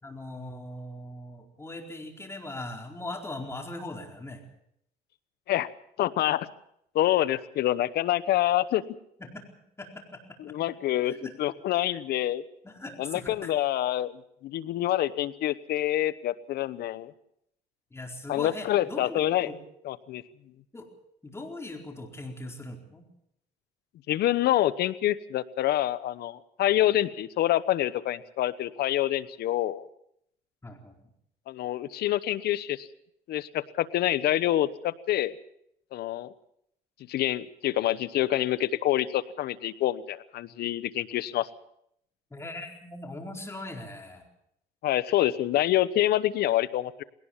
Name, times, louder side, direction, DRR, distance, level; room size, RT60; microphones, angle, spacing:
voice 1, 0.0-4.4 9.2-9.5 9.8-10.2 10.5-10.6 11.0-11.3 12.6-13.5 17.9-19.5 20.7-20.9 21.2-23.1 30.6-31.0 42.3-44.3, left 2 dB, 15° left, 2 dB, 4.4 m, -40 dB
voice 2, 6.0-6.5 6.9-8.8 10.4-12.4 13.0-17.1 18.3-19.5 19.8-20.2 24.1-29.9 31.5-32.9 33.3-35.3 35.9-36.3 37.1-41.5 44.8-47.0, left 13 dB, 70° left, 16 dB, 1.0 m, -27 dB
20.5 x 18.0 x 7.3 m, 0.72 s
cardioid pair, 110°, 17 cm